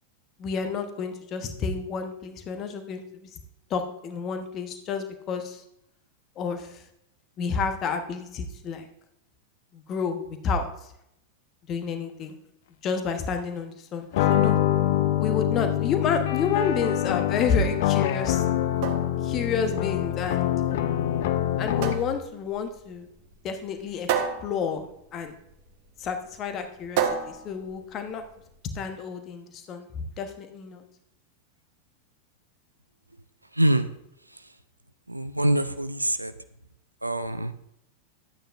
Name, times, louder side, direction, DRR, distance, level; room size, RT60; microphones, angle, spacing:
voice 1, 0.4-3.4 3.7-5.6 6.4-6.8 7.4-8.9 9.7-10.7 11.7-12.4 12.8-14.6 15.2-18.4 19.2-20.5 21.6-23.1 23.4-24.1 24.4-24.9 25.1-25.4 26.0-28.2 28.7-30.8, left 5 dB, 30° left, 7 dB, 1.0 m, -30 dB
sound 1, 14.1-22.2, left 12 dB, 55° left, 0.5 m, -25 dB
sound 2, 18.5-28.5, right 7 dB, 45° right, 1.0 m, -33 dB
voice 2, 33.6-33.9 35.1-36.3 37.0-37.5, right 1 dB, 85° right, 10 dB, 0.4 m, -24 dB
12.5 x 8.9 x 2.5 m, 0.78 s
figure-of-eight pair, 90°, 0 cm